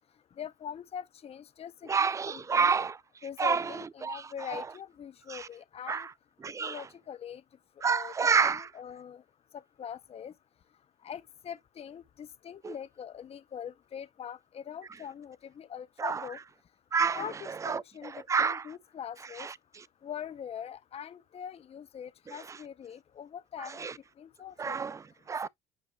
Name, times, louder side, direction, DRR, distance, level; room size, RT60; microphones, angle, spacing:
voice 1, 0.4-2.7 3.2-6.1 6.6-7.4 7.9-8.1 8.4-9.2 9.8-10.3 11.0-16.4 17.1-19.5 20.0-23.9 24.2-24.8, left 8 dB, 35° left, 0.6 m, -42 dB
voice 2, 1.9-3.0 3.4-4.7 5.3-5.5 5.9-6.1 6.4-6.9 7.8-8.7 12.6-12.7 16.0-16.3 16.9-18.7 19.4-19.8 22.3-22.6 23.6-24.0 24.6-25.5, right 5 dB, 20° right, 0.3 m, -30 dB
8.9 x 4.9 x 2.2 m
cardioid pair, 110°, 17 cm